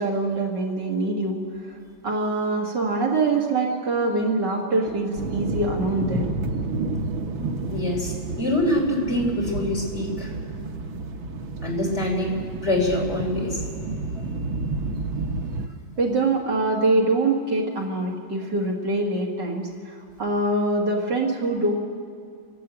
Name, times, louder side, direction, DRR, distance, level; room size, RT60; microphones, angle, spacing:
voice 1, 0.0-1.4 2.0-6.4 16.0-21.7, right 2 dB, 65° right, -1 dB, 2.8 m, -24 dB
sound 1, 5.1-15.7, right 3 dB, 85° right, 1.8 m, -30 dB
voice 2, 7.7-10.3 11.6-13.6, left 1 dB, 35° left, -2 dB, 4.1 m, -25 dB
27.0 x 11.5 x 8.4 m, 2.4 s
omnidirectional pair, 2.1 m